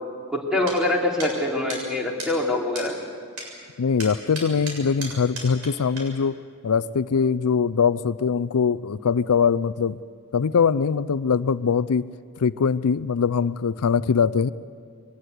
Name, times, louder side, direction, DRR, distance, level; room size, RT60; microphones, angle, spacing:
voice 1, 0.3-3.0, left 2 dB, 5° right, -1 dB, 3.6 m, -24 dB
sound 1, 0.7-0.8 1.2-1.3 1.7-1.8 2.2-2.3 2.8-2.9 3.4-3.5 4.0-5.7 6.0-6.1, right 2 dB, 75° right, 7.4 m, -34 dB
voice 2, 3.8-10.0 10.3-12.0 12.4-14.5, left 6 dB, 80° left, 16 dB, 0.5 m, -22 dB
23.0 x 20.0 x 8.2 m, 2.2 s
head